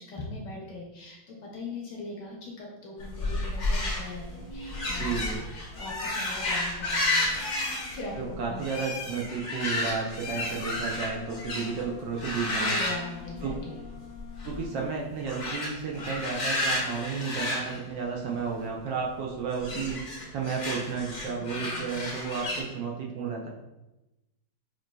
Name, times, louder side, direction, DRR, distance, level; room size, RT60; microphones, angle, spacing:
voice 1, 0.1-5.1 5.5-8.8 9.5-9.6 12.6-13.8, left 2 dB, 65° left, -2 dB, 1.2 m, -40 dB
sound 1, 3.0-11.8 12.2-13.9 14.2-14.6 15.2-18.6 19.5-22.6, left 2 dB, 45° left, 0.7 m, -32 dB
voice 2, 5.0-5.4 8.2-12.8 13.4-13.6 14.4-20.0 20.3-23.5, right 5 dB, 70° right, -2 dB, 1.2 m, -32 dB
Wind instrument woodwind instrument, 10.6-14.9, left 12 dB, 85° left, 1.4 m, -46 dB
6.1 x 2.6 x 2.2 m, 0.98 s
omnidirectional pair, 2.3 m